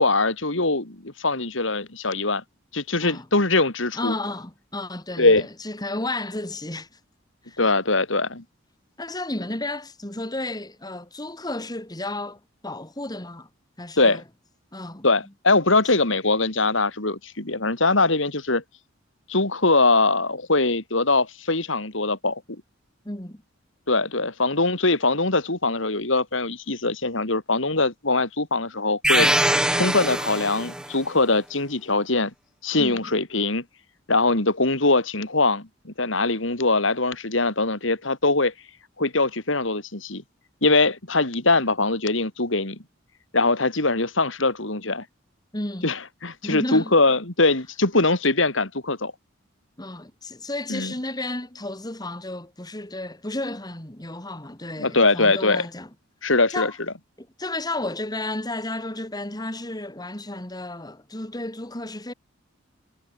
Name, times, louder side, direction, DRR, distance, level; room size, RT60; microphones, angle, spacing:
voice 1, 0.0-2.4 2.7-4.2 5.2-5.4 7.6-8.4 14.0-14.2 15.0-18.6 19.3-22.4 23.9-29.4 29.7-32.3 32.6-33.6 34.1-38.5 39.0-40.2 40.6-42.8 43.3-45.0 45.8-49.1 50.7-50.9 54.8-55.7 56.2-56.7, left 3 dB, 70° left, 3.6 m, -22 dB
voice 2, 3.9-7.0 7.5-7.6 9.0-13.5 13.8-14.2 14.7-15.1 23.0-23.4 32.8-33.1 45.5-46.0 46.4-46.9 49.8-55.9 56.5-56.7 57.2-62.1, left 2 dB, 20° left, 2.8 m, -32 dB
sound 1, 29.0-30.9, right 1 dB, 5° right, 1.2 m, -22 dB
head